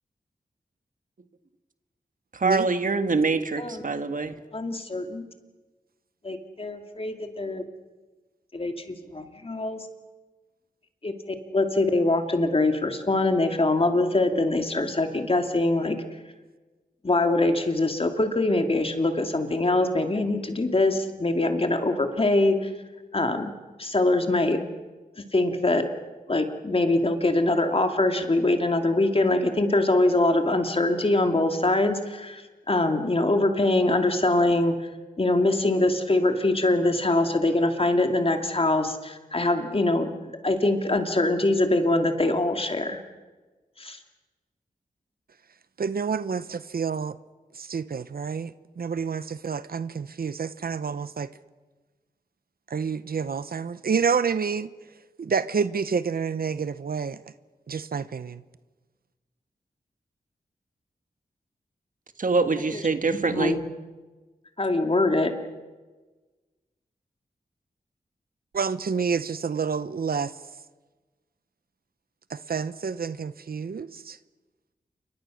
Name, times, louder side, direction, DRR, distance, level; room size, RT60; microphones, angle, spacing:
voice 1, 2.3-4.3 62.2-63.6, right 4 dB, 55° right, 8 dB, 1.7 m, -24 dB
voice 2, 4.5-5.2 6.2-7.6 8.5-9.8 11.0-11.2 11.5-16.0 17.0-22.7 23.1-23.5 23.8-24.6 25.3-25.9 26.3-32.4 32.7-34.8 35.2-40.1 40.4-43.0 43.8-44.0 62.7-62.8 63.2-63.6 64.6-65.3, left 2 dB, 35° left, 5 dB, 2.6 m, -23 dB
voice 3, 45.8-47.2 47.5-51.3 52.7-54.7 55.2-57.2 57.7-58.4 68.5-70.3 72.3-74.2, right 6 dB, 75° right, 14 dB, 0.8 m, -28 dB
28.5 x 24.0 x 6.4 m, 1.3 s
wide cardioid pair, 90°, 16 cm